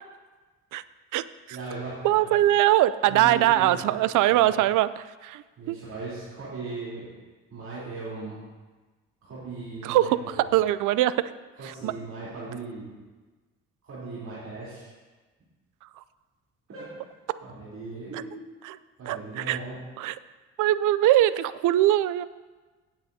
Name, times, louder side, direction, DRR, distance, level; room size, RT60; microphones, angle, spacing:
voice 1, 1.5-2.4 3.1-4.5 5.6-7.1 7.5-8.4 9.2-10.5 11.6-12.9 13.8-14.9 16.7-16.8 17.4-18.5 19.0-19.8, right 3 dB, 60° right, -10 dB, 3.6 m, -38 dB
voice 2, 2.0-5.4 5.7-5.8 9.8-10.2 10.5-11.3 11.8-11.9 18.6-18.8 19.1-19.6 20.0-20.1 20.6-22.2, right 14 dB, 85° right, 15 dB, 0.5 m, -22 dB
16.0 x 8.9 x 2.8 m, 1.3 s
cardioid pair, 90°, 30 cm